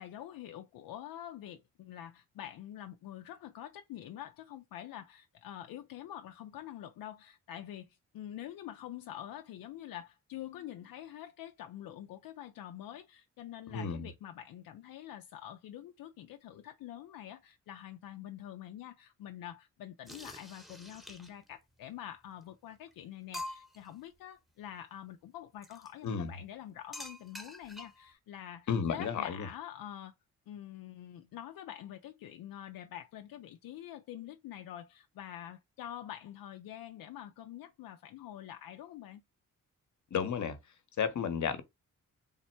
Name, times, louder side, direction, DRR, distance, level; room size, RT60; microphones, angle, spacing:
voice 1, 0.0-30.1 30.5-39.2, left 11 dB, 80° left, 0.5 m, -46 dB
voice 2, 13.7-14.1 26.0-26.3 28.7-29.5 40.1-40.6 41.0-41.6, left 6 dB, 55° left, 0.9 m, -32 dB
sound 1, 20.1-21.5 22.4-22.5 22.9-23.0 23.3-23.9 25.6-25.9 26.9-28.1, left 1 dB, ahead, 0.9 m, -46 dB
3.6 x 2.1 x 4.3 m
cardioid pair, 75°, 35 cm